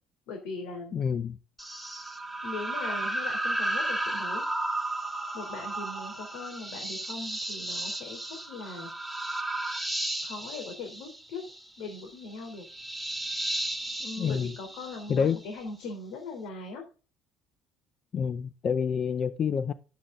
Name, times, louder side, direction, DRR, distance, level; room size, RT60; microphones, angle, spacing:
voice 1, 0.3-0.9 2.4-4.4 5.3-8.2 8.5-8.9 10.2-11.4 11.8-12.6 14.0-16.8, left 3 dB, 85° left, 3.3 m, -40 dB
voice 2, 0.9-1.4 14.2-14.5 15.1-15.4 18.1-19.7, left 7 dB, 40° left, 0.6 m, -28 dB
sound 1, 1.6-15.5, right 1 dB, 5° left, 1.7 m, -34 dB
11.5 x 8.5 x 3.8 m
cardioid pair, 125°, 0 cm